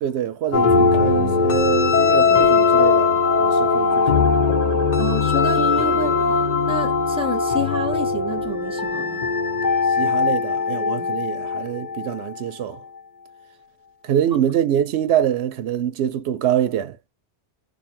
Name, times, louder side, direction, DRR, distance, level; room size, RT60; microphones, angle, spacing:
voice 1, 0.0-4.4 10.0-12.8 14.0-17.0, right 10 dB, 85° right, 0.9 m, -25 dB
sound 1, 0.5-12.2, left 4 dB, 50° left, 0.8 m, -19 dB
Motor vehicle (road) / Siren, 3.9-8.0, right 7 dB, 55° right, 0.7 m, -37 dB
voice 2, 5.0-6.4 6.7-9.3 11.0-11.1, left 1 dB, 5° right, 0.7 m, -29 dB
2.7 x 2.6 x 4.2 m
omnidirectional pair, 1.1 m